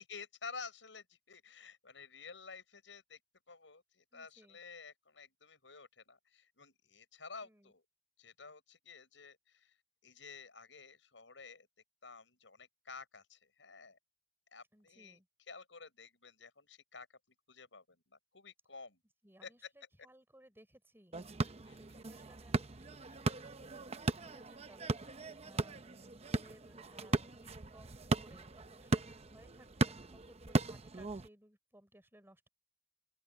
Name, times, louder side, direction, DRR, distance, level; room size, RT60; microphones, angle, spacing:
voice 1, 0.0-3.2 3.5-7.8 8.2-9.7 10.0-11.7 12.0-14.0 14.5-15.2 15.5-17.1 17.5-19.0 19.4-19.7 21.6-22.0, left 5 dB, 85° left, 6.0 m, -52 dB
voice 2, 4.1-4.6 7.4-7.7 14.7-15.3 19.2-32.5, right 1 dB, 15° right, 5.8 m, -63 dB
sound 1, 21.1-31.3, right 2 dB, 35° right, 0.8 m, -37 dB
open air
head